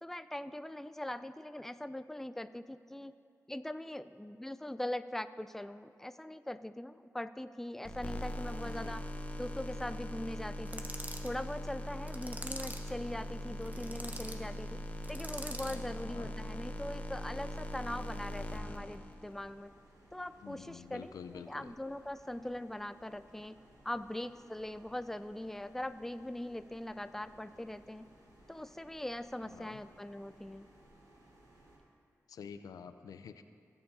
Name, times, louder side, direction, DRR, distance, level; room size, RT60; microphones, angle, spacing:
voice 1, 0.0-3.1 3.5-9.1 9.4-10.9 11.2-14.8 15.1-19.7 20.1-23.6 23.8-28.1 28.5-30.7, left 1 dB, 5° left, 12 dB, 0.4 m, -41 dB
sound 1, 7.8-19.5, equal, 25° left, 0.8 m, -41 dB
voice 2, 8.6-9.0 15.7-16.3 20.4-21.7 29.4-29.8 32.3-33.4, left 6 dB, 90° left, 10 dB, 0.4 m, -49 dB
sound 2, 10.7-11.3 12.1-12.9 13.6-14.4 15.0-15.9, right 1 dB, 30° right, 0.9 m, -44 dB
sound 3, 13.7-31.8, right 1 dB, 80° right, 2.0 m, -62 dB
16.5 x 7.1 x 2.7 m, 2.3 s
cardioid pair, 45°, 6 cm